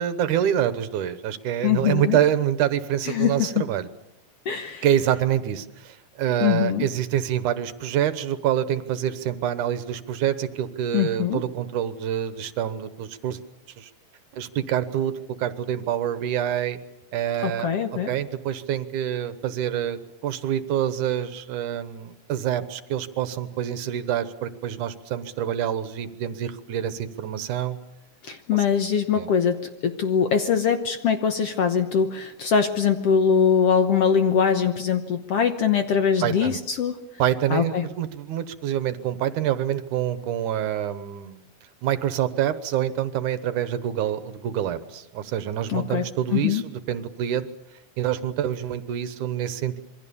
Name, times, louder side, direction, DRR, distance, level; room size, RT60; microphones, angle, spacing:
voice 1, 0.0-3.9 4.8-13.4 13.8-13.9 14.3-16.8 17.1-27.8 28.5-28.6 29.2-29.3 36.2-36.6 37.2-41.4 41.8-47.5 48.0-49.8, right 10 dB, 70° right, 12 dB, 2.5 m, -26 dB
voice 2, 1.6-2.2 3.1-3.6 4.5-4.8 6.4-6.9 10.9-11.4 17.4-18.1 28.2-37.0 37.5-37.9 45.7-46.1 46.3-46.6, left 7 dB, 60° left, 7 dB, 1.7 m, -22 dB
27.0 x 23.5 x 7.0 m, 0.89 s
omnidirectional pair, 3.8 m